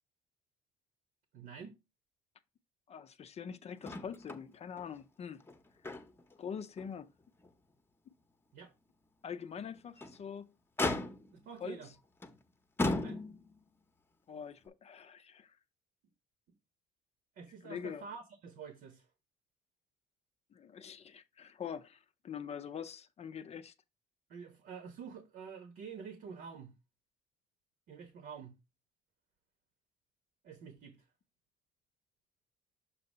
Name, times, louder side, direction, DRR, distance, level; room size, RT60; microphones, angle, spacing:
voice 1, 1.3-1.7 8.5-8.7 11.3-11.9 13.0-13.2 17.4-19.0 24.3-26.7 27.9-28.5 30.4-31.0, right 6 dB, 70° right, 1.2 m, -48 dB
voice 2, 2.9-5.4 6.4-7.1 9.2-10.5 11.6-11.8 14.3-15.6 17.6-18.1 20.5-23.7, left 7 dB, 40° left, 0.5 m, -44 dB
Motor vehicle (road), 3.8-4.5 4.8-4.9 5.4-6.3 6.8-6.9 7.4-7.5 9.7-10.2 10.8-11.5 12.2-12.4 12.8-13.6 14.6-14.7, left 2 dB, 15° left, 0.8 m, -36 dB
6.8 x 2.7 x 5.4 m
cardioid pair, 110°, 17 cm